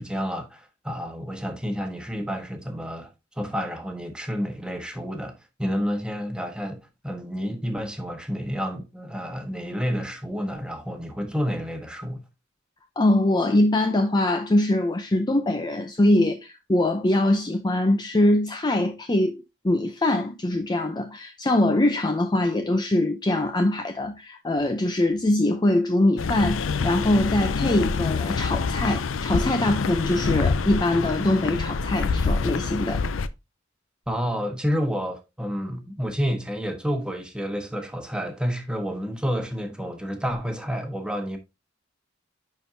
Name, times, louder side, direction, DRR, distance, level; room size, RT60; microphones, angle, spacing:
voice 1, 0.0-3.1 3.4-12.2 34.1-41.4, equal, 5° right, 1.3 m, -29 dB
voice 2, 13.0-33.0, left 1 dB, 20° left, 0.5 m, -23 dB
sound 1, 26.2-33.3, left 4 dB, 80° left, 0.5 m, -26 dB
10.5 x 4.5 x 2.7 m
head